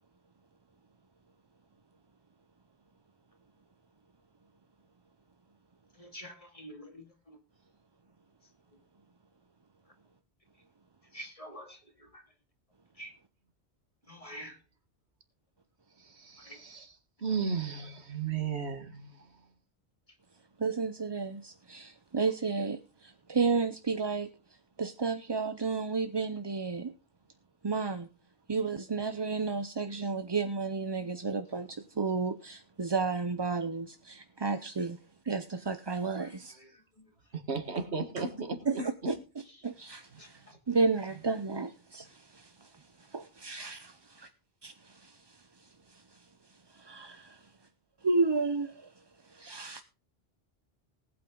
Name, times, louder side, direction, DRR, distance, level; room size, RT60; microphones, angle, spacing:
voice 1, 6.0-7.4 11.1-11.8 12.1-12.2 13.0-13.1 14.1-14.6, equal, 30° left, 2.4 m, -46 dB
voice 2, 16.0-17.0 17.2-19.3 36.5-36.6 37.3-39.2 40.1-40.2, right 5 dB, 85° right, 2.0 m, -35 dB
voice 3, 20.6-24.3 24.8-26.9 27.6-28.1 28.5-35.0 35.2-36.5 38.2-38.3 38.7-39.2 39.6-44.3 44.6-47.5 48.0-48.9 49.2-49.8, right 4 dB, 30° right, 0.6 m, -32 dB
19.0 x 8.7 x 3.8 m
omnidirectional pair, 1.1 m